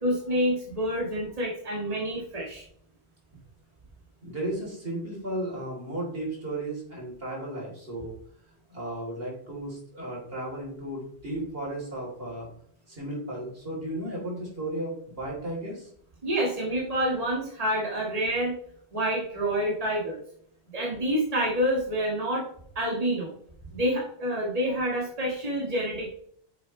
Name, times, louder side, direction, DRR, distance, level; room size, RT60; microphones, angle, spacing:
voice 1, 0.0-2.6 16.2-18.6 18.9-20.2 20.7-22.5 22.8-23.3 23.7-26.2, equal, 35° right, -4 dB, 1.9 m, -28 dB
voice 2, 4.2-8.1 8.7-12.5 12.9-15.9, right 1 dB, 65° right, -3 dB, 3.7 m, -34 dB
9.8 x 6.7 x 3.2 m, 0.64 s
omnidirectional pair, 1.1 m